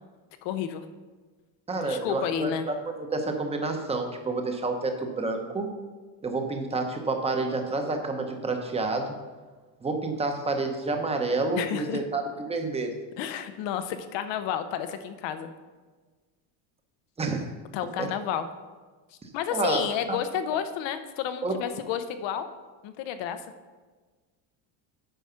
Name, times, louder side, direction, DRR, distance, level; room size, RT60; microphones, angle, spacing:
voice 1, 0.4-0.8 1.8-2.7 11.6-12.0 13.2-15.5 17.7-18.5 19.3-22.5 22.8-23.4, left 9 dB, 70° left, 10 dB, 0.9 m, -31 dB
voice 2, 1.7-5.7 6.2-9.2 9.8-12.2 12.5-12.9 17.2-17.5 18.0-18.1 19.2-19.8 20.1-20.2 21.4-21.6, right 3 dB, 15° right, 4 dB, 0.9 m, -29 dB
9.1 x 4.7 x 5.7 m, 1.4 s
cardioid pair, 140°, 45 cm